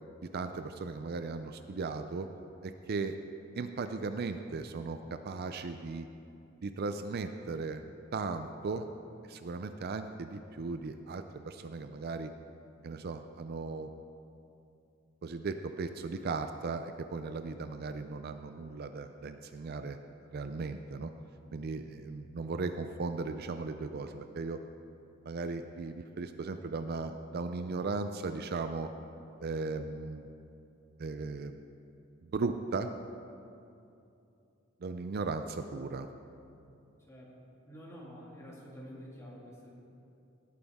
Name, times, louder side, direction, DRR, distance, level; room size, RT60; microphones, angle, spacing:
voice 1, 0.3-2.3 2.6-3.2 3.5-6.1 6.6-7.8 8.1-8.9 9.3-12.3 12.8-13.9 15.2-20.0 20.3-21.1 21.5-24.6 25.3-28.9 29.4-30.3 31.0-31.6 32.3-32.9 34.8-36.1, right 4 dB, 50° right, 8 dB, 0.4 m, -37 dB
voice 2, 37.7-39.7, equal, 15° left, -4 dB, 2.2 m, -48 dB
18.5 x 9.3 x 3.6 m, 2.7 s
head